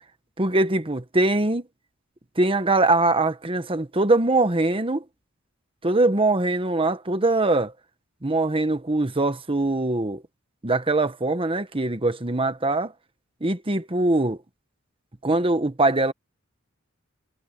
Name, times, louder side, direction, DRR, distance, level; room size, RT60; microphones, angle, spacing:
voice 1, 0.4-1.7 2.4-5.0 5.8-7.7 8.2-10.2 10.6-12.9 13.4-14.4 15.2-16.1, right 2 dB, 25° right, 1.2 m, -22 dB
head